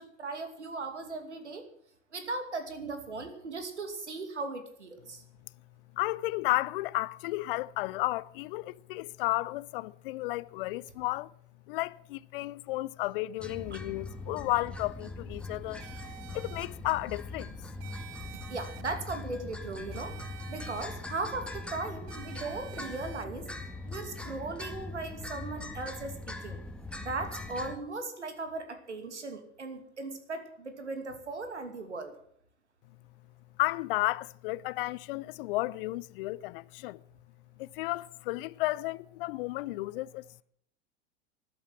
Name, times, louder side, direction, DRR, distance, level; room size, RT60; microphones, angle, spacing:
voice 1, 0.0-1.6 2.1-5.2 13.7-13.8 18.3-20.1 20.5-23.5 23.9-26.6 27.0-32.1, right 3 dB, 85° right, 2.8 m, -38 dB
voice 2, 5.9-11.3 11.7-15.9 16.3-17.6 33.6-37.0 37.6-40.4, left 19 dB, 55° left, 0.6 m, -33 dB
sound 1, 13.4-27.7, left 2 dB, 5° left, 2.0 m, -41 dB
sound 2, 15.8-16.7 17.8-18.8 19.9-20.8 22.1-23.2, right 16 dB, 45° right, 1.1 m, -49 dB
14.0 x 11.5 x 7.6 m
figure-of-eight pair, 85°, 34 cm